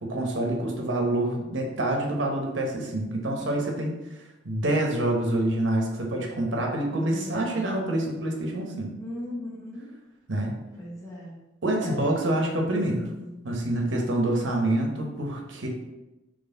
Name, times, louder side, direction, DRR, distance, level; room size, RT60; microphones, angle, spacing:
voice 1, 0.0-3.9 4.4-8.9 10.3-10.5 11.6-13.1 13.4-15.7, right 1 dB, 75° right, 0 dB, 0.9 m, -26 dB
voice 2, 6.9-7.6 9.0-9.9 10.8-11.3 11.8-12.1, left 1 dB, 15° left, -6 dB, 0.9 m, -37 dB
4.2 x 3.1 x 3.9 m, 1.0 s
head